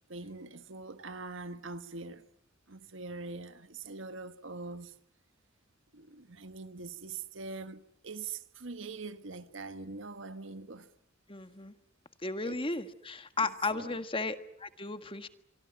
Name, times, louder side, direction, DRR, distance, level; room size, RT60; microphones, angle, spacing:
voice 1, 0.1-2.2 2.7-4.9 5.9-10.9 12.4-12.6 13.4-14.0, right 3 dB, 70° right, 1.5 m, -43 dB
voice 2, 11.3-11.7 12.2-15.3, left 3 dB, 25° left, 1.5 m, -35 dB
25.0 x 24.5 x 9.1 m
head